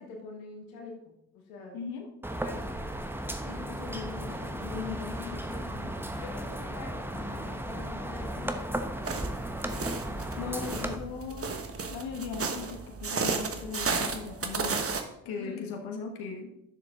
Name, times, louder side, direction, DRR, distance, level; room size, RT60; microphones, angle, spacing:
voice 1, 0.0-1.8 2.4-2.6 3.4-8.7 9.4-10.3 10.6-10.9 15.4-15.8, left 5 dB, 90° left, 1 dB, 1.5 m, -43 dB
voice 2, 1.7-2.1 7.3-8.2 10.4-11.5 11.9-14.8 15.2-16.5, left 5 dB, 70° left, 3 dB, 1.4 m, -39 dB
sound 1, 2.2-11.0, right 1 dB, 5° right, 1.1 m, -35 dB
sound 2, 9.0-15.0, right 4 dB, 35° right, 1.3 m, -33 dB
9.9 x 6.6 x 3.7 m, 0.81 s
hypercardioid pair, 50°, 39 cm